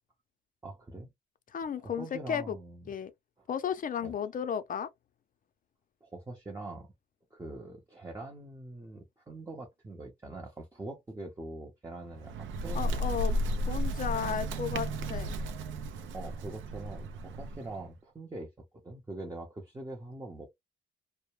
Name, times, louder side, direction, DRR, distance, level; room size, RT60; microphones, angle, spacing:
voice 1, 0.6-1.1 2.0-2.9 3.4-3.5 4.0-4.1 6.0-6.9 7.3-13.4 16.1-20.5, right 2 dB, 15° right, 0.7 m, -43 dB
voice 2, 1.5-2.6 2.9-3.1 3.5-4.9 12.7-13.4 13.7-15.3, left 8 dB, 45° left, 0.5 m, -34 dB
Bird, 12.1-17.8, right 1 dB, 75° right, 0.5 m, -34 dB
2.2 x 2.1 x 3.1 m
cardioid pair, 90°, 20 cm